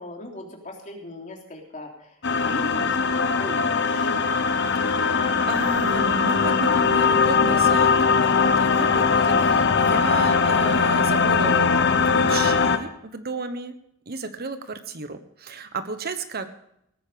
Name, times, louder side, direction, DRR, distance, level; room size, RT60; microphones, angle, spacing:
voice 1, 0.0-4.1, left 1 dB, 35° left, 1 dB, 3.3 m, -39 dB
sound 1, 2.2-12.8, left 5 dB, 55° left, 1.1 m, -20 dB
voice 2, 4.7-7.9 8.2-11.7 12.0-13.7 14.1-16.5, right 3 dB, 45° right, 9 dB, 1.2 m, -33 dB
18.0 x 9.5 x 5.1 m, 0.74 s
head